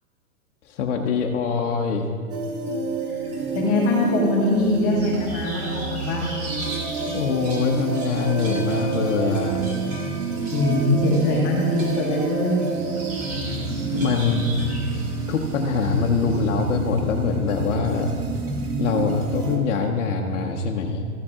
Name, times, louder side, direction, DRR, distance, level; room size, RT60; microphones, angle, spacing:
voice 1, 0.6-2.1 7.1-9.6 13.9-14.5 15.3-18.1 18.8-21.0, left 5 dB, 55° left, 0 dB, 0.8 m, -24 dB
sound 1, 2.3-19.6, right 4 dB, 75° right, 1.8 m, -28 dB
voice 2, 3.1-6.3 10.5-12.7, left 2 dB, 20° left, -3 dB, 1.2 m, -22 dB
sound 2, 4.9-16.6, right 1 dB, 25° right, 1.7 m, -38 dB
14.0 x 7.4 x 3.7 m, 2.1 s
hypercardioid pair, 175°, 45 cm